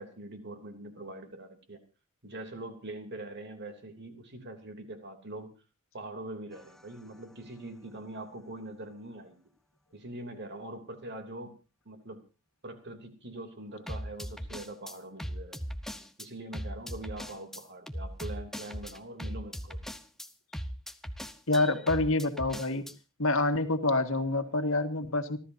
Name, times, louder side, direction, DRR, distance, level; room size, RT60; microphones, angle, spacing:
voice 1, 0.0-1.8 2.2-5.5 5.9-9.4 9.9-11.5 11.8-12.2 12.6-15.6 16.2-19.8, right 1 dB, 55° right, 6 dB, 3.2 m, -43 dB
sound 1, 6.5-6.8 13.9-16.3 16.5-22.9, equal, ahead, 0.9 m, -39 dB
voice 2, 21.5-22.8 23.2-25.4, left 2 dB, 70° left, 7 dB, 1.9 m, -27 dB
28.5 x 13.0 x 2.8 m, 0.33 s
head